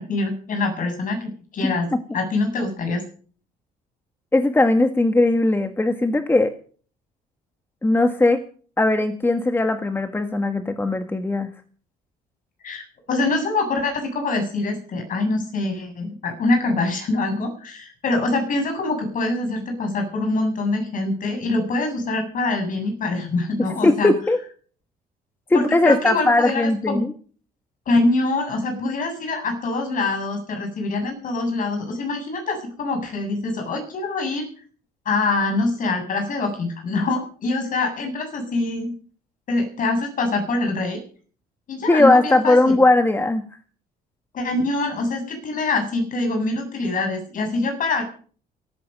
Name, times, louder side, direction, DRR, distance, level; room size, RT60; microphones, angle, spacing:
voice 1, 0.0-1.9 2.1-3.0 12.6-24.1 25.5-27.1 27.9-34.4 35.0-38.9 39.5-41.0 41.7-42.8 44.3-48.0, left 2 dB, 50° left, 5 dB, 7.8 m, -24 dB
voice 2, 4.3-6.5 7.8-8.4 8.8-11.5 23.8-24.4 25.5-27.1 41.9-43.4, left 2 dB, 15° left, 7 dB, 1.7 m, -18 dB
17.5 x 14.0 x 5.4 m, 0.44 s
cardioid pair, 110°, 17 cm